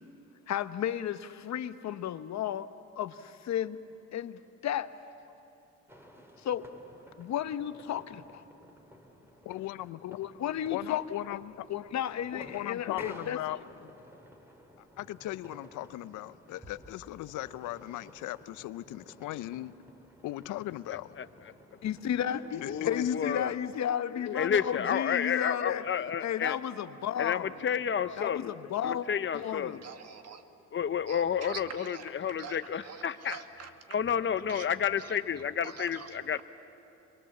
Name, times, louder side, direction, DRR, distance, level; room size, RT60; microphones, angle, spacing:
voice 1, 0.5-2.7 3.0-3.8 4.1-4.9 6.4-6.6 7.2-8.3 10.0-13.6 21.8-27.5 28.0-29.1 29.3-29.8, left 10 dB, 65° left, 12 dB, 0.9 m, -33 dB
sound 1, 5.9-23.8, equal, 10° right, 2.8 m, -54 dB
voice 2, 9.5-10.0 10.7-11.7 12.3-13.6 15.0-19.7 20.2-21.1 22.6-23.1, left 16 dB, 85° left, 16 dB, 0.6 m, -38 dB
voice 3, 22.7-23.5 24.3-26.6 27.2-28.5 28.8-29.8 30.7-33.4 33.9-36.4, left 8 dB, 40° left, 12 dB, 0.9 m, -30 dB
voice 4, 29.8-30.4 31.1-33.7 34.5-34.7 35.0-35.1 35.6-36.2, right 6 dB, 55° right, 7 dB, 1.7 m, -45 dB
25.0 x 22.5 x 7.3 m, 2.9 s
cardioid pair, 90°, 30 cm